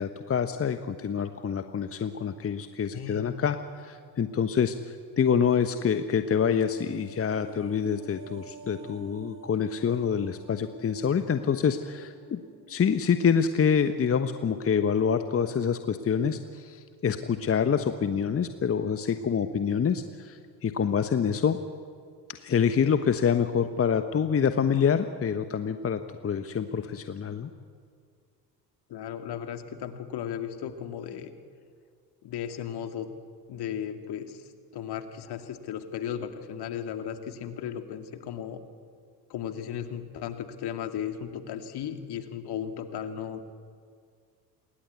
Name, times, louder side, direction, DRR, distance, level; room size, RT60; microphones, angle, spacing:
voice 1, 0.0-12.4 12.7-21.6 22.3-27.5, left 7 dB, 25° left, 9 dB, 1.2 m, -26 dB
voice 2, 2.9-3.3 28.9-31.3 32.2-33.1 33.5-38.6 39.3-43.4, left 9 dB, 50° left, 7 dB, 2.5 m, -35 dB
sound 1, 6.2-14.7 15.0-15.1, right 5 dB, 35° right, 4.9 m, -50 dB
27.5 x 21.5 x 8.4 m, 2.1 s
figure-of-eight pair, 55°, 50 cm